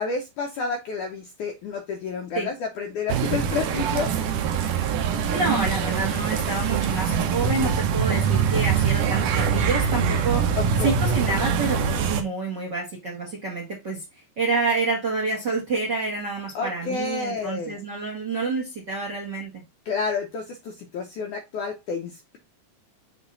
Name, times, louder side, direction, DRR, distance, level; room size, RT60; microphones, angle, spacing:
voice 1, 0.0-4.1 10.6-10.9 16.6-17.8 19.9-22.4, left 5 dB, 75° left, 1.9 m, -30 dB
sound 1, 3.1-12.2, right 7 dB, 70° right, 2.2 m, -23 dB
voice 2, 5.3-10.6 10.8-14.0 14.4-19.6, right 3 dB, 45° right, 1.4 m, -28 dB
7.1 x 3.9 x 3.9 m
omnidirectional pair, 4.6 m